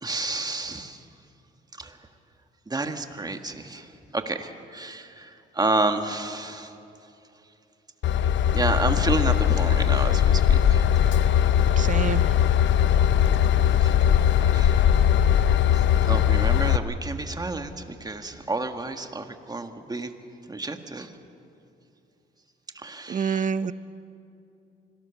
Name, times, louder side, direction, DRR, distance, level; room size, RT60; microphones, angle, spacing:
voice 1, 0.0-1.0 1.8-2.0 2.7-6.7 8.5-10.9 13.8-14.0 14.4-15.1 15.7-20.1 20.5-21.1 22.7-23.5, right 2 dB, 20° right, 6 dB, 1.7 m, -30 dB
Train / Engine, 8.0-16.8, left 9 dB, 70° left, 0.8 m, -20 dB
voice 2, 11.8-12.3 23.1-23.7, right 6 dB, 40° right, 15 dB, 0.7 m, -27 dB
26.0 x 18.0 x 7.1 m, 2.7 s
cardioid pair, 90°, 20 cm